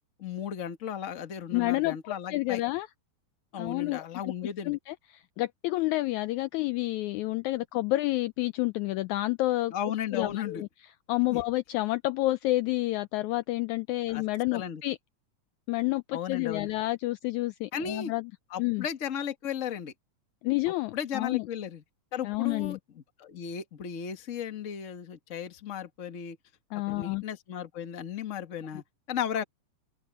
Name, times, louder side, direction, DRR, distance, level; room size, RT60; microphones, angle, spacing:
voice 1, 0.2-2.6 3.5-4.8 9.7-10.6 11.3-11.4 14.1-14.2 14.5-14.8 16.1-16.7 17.7-18.1 18.5-19.9 20.9-21.8 22.1-22.8 23.2-26.4 26.9-29.4, left 8 dB, 40° left, 1.0 m, -35 dB
voice 2, 1.5-2.9 3.6-4.1 4.6-9.7 10.1-10.7 11.1-15.0 15.7-18.3 18.6-18.8 20.4-21.4 22.2-22.8 26.7-27.2, left 18 dB, 85° left, 1.7 m, -29 dB
open air
omnidirectional pair, 3.9 m